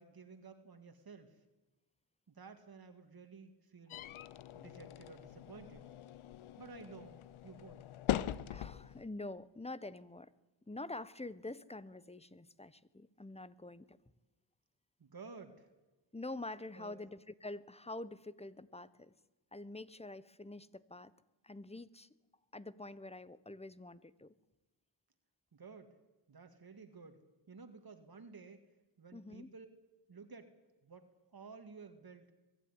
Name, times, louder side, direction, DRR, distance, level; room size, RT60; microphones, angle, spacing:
voice 1, 0.0-1.4 2.3-4.0 4.5-5.9 6.6-7.9 15.0-15.7 16.7-17.0 25.5-26.0 26.3-28.6 29.0-29.7 30.1-30.5 30.8-32.3, right 4 dB, 50° right, 7 dB, 2.0 m, -54 dB
sound 1, 3.9-9.0, left 12 dB, 85° left, 0.8 m, -41 dB
voice 2, 8.5-10.3 10.7-14.0 16.1-19.1 19.5-21.1 21.4-22.1 22.5-24.3 29.1-29.5, left 2 dB, 15° left, 17 dB, 1.0 m, -46 dB
22.5 x 12.5 x 9.8 m, 1.1 s
cardioid pair, 60°, 47 cm